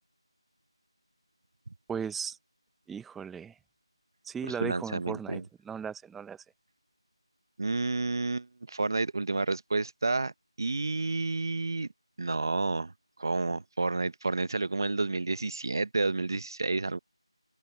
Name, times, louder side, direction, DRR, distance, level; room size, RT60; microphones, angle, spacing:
voice 1, 1.9-2.4 2.9-3.5 4.2-6.4, right 7 dB, ahead, 0.7 m, -37 dB
voice 2, 4.4-5.4 7.6-10.3 10.6-11.9 12.2-12.9 13.2-17.0, right 3 dB, 45° right, 1.0 m, -30 dB
open air
figure-of-eight pair, 170°, 3 cm